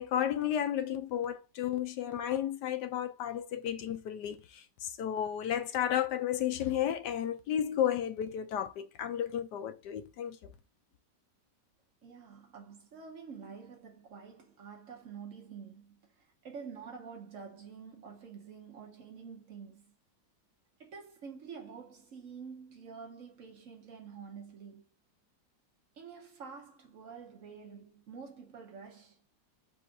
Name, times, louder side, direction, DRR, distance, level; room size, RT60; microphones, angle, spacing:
voice 1, 0.0-10.4, left 10 dB, 70° left, 1.2 m, -33 dB
voice 2, 12.0-16.0 16.4-19.9 20.8-24.8 26.0-29.2, right 6 dB, 55° right, 1.0 m, -48 dB
4.3 x 2.5 x 4.7 m
omnidirectional pair, 2.0 m